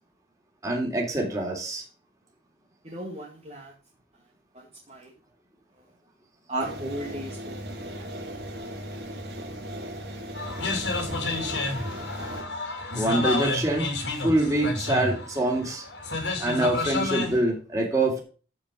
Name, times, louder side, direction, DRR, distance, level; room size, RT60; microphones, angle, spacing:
voice 1, 0.6-1.8 12.9-13.9 14.2-15.8 16.4-18.2, right 1 dB, 20° right, 0 dB, 3.4 m, -25 dB
voice 2, 2.9-3.7 4.9-5.1 6.5-7.6 8.0-8.1, right 1 dB, 35° right, -2 dB, 2.1 m, -34 dB
sound 1, 6.6-12.4, equal, 65° right, 3.8 m, -37 dB
sound 2, 10.3-17.4, left 3 dB, 85° left, 3.6 m, -30 dB
14.0 x 5.3 x 5.1 m, 0.37 s
head